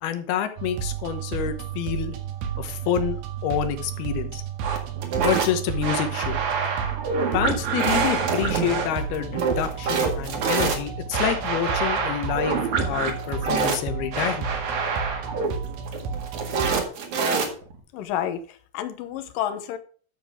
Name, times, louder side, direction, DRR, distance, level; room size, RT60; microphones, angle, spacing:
voice 1, 0.0-2.1 2.6-4.4 5.2-6.4 7.3-14.5, left 10 dB, 90° left, 3.1 m, -28 dB
sound 1, 0.6-16.8, right 7 dB, 80° right, 3.3 m, -32 dB
sound 2, 4.6-17.8, right 5 dB, 55° right, 3.0 m, -26 dB
voice 2, 17.9-19.8, left 10 dB, 70° left, 2.4 m, -30 dB
11.0 x 7.4 x 3.6 m
omnidirectional pair, 4.4 m